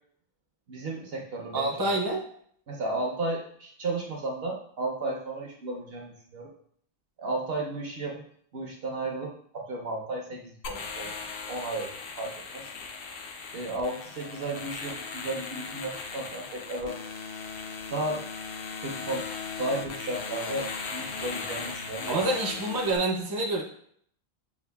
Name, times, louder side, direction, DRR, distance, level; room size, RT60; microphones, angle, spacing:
voice 1, 0.7-1.9 2.7-6.5 7.2-8.2 8.5-11.1 11.5-11.9 12.2-12.7 13.5-17.0 17.9-18.2 18.8-19.3 19.6-22.2, right 2 dB, 55° right, 0 dB, 0.8 m, -34 dB
voice 2, 1.5-2.2 22.1-23.6, right 2 dB, 25° right, 0 dB, 0.5 m, -27 dB
sound 1, 10.6-23.0, left 5 dB, 60° left, 0.6 m, -38 dB
6.9 x 2.4 x 2.2 m, 0.62 s
omnidirectional pair, 1.4 m